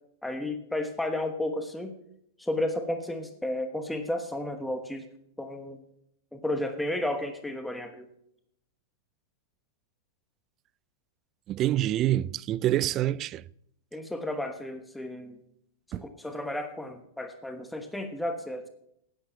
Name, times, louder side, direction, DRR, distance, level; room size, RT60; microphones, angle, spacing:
voice 1, 0.2-1.9 2.4-5.1 5.4-5.8 6.3-8.1 13.9-15.4 15.9-18.7, left 1 dB, 5° left, 1.2 m, -33 dB
voice 2, 11.5-13.4 15.9-16.0, right 13 dB, 35° right, 0.4 m, -26 dB
10.0 x 8.6 x 5.8 m
hypercardioid pair, 110°, 0 cm